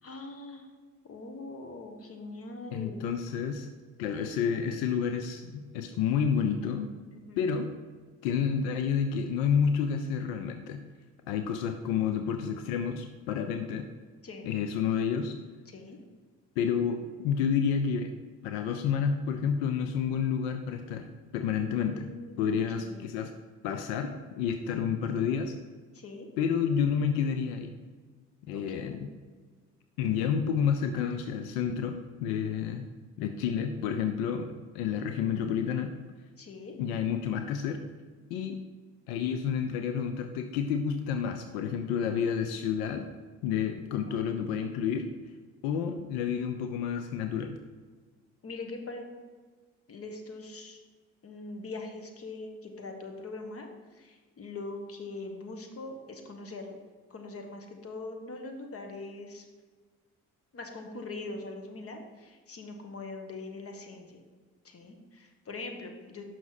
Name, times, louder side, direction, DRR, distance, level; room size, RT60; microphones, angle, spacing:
voice 1, 0.0-0.7 1.0-3.0 7.1-7.5 14.2-14.5 15.7-16.0 21.9-23.1 25.9-26.3 28.5-29.1 32.4-32.7 36.4-36.8 44.0-44.2 48.4-49.1 49.9-50.8 51.2-53.7 53.9-56.8 57.1-59.4 60.5-64.2 64.6-66.2, left 3 dB, 40° left, 4 dB, 1.3 m, -42 dB
voice 2, 2.7-3.7 4.0-6.9 7.4-7.7 8.2-10.8 11.3-13.9 14.4-15.3 16.6-18.1 18.4-21.1 21.3-22.1 22.4-23.3 23.6-25.5 26.4-27.7 28.5-29.1 30.0-32.9 33.2-35.9 36.8-37.8 38.3-38.6 39.1-43.1 43.4-45.1 45.6-47.6, left 7 dB, 90° left, 7 dB, 0.5 m, -30 dB
6.2 x 5.8 x 4.0 m, 1.4 s
supercardioid pair, 60°, 34 cm